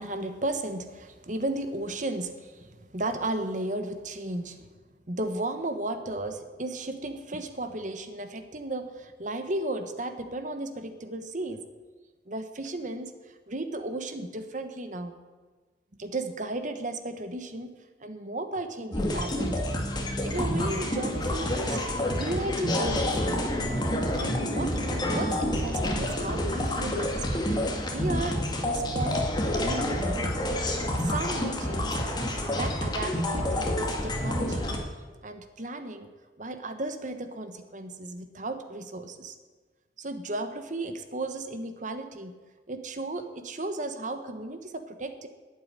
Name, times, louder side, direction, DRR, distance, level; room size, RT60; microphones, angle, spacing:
voice 1, 0.0-4.7 5.1-11.6 12.3-15.1 16.0-19.6 20.2-21.8 22.1-23.5 24.2-24.8 25.1-27.2 27.9-29.3 29.5-30.2 31.0-32.0 32.5-34.8 35.2-36.1 36.4-39.4 40.0-42.3 42.7-45.3, right 2 dB, 45° right, 8 dB, 1.2 m, -34 dB
sound 1, 18.9-34.8, left 1 dB, 25° left, 2.0 m, -28 dB
11.5 x 8.7 x 9.8 m, 1.3 s
head